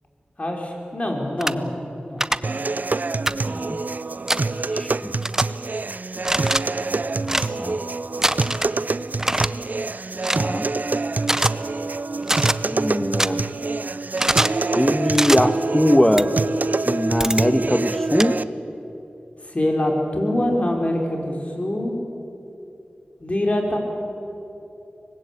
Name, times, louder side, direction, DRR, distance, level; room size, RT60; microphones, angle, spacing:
voice 1, 0.4-1.7 2.0-2.3 19.4-22.0 23.2-23.8, left 1 dB, 40° left, 1 dB, 4.9 m, -24 dB
sound 1, 1.4-1.5 2.2-2.4 3.3-3.4 4.3-4.4 5.2-5.4 6.2-6.6 7.2-7.5 8.2-8.7 9.2-9.5 10.2-10.4 11.2-11.5 12.2-12.6 13.2-13.3 14.2-14.6 15.1-15.4 16.2-16.3 17.2-17.4 18.2-18.3, right 1 dB, 15° right, 0.8 m, -22 dB
sound 2, 2.4-18.4, right 3 dB, 55° right, 0.6 m, -26 dB
voice 2, 3.5-3.8 4.7-5.1 6.8-7.3 7.6-7.8 10.3-10.7 12.6-13.4 14.7-16.3 16.8-18.3, equal, 10° left, 9 dB, 1.6 m, -21 dB
25.0 x 20.5 x 8.7 m, 2.9 s
wide cardioid pair, 50°, 3 cm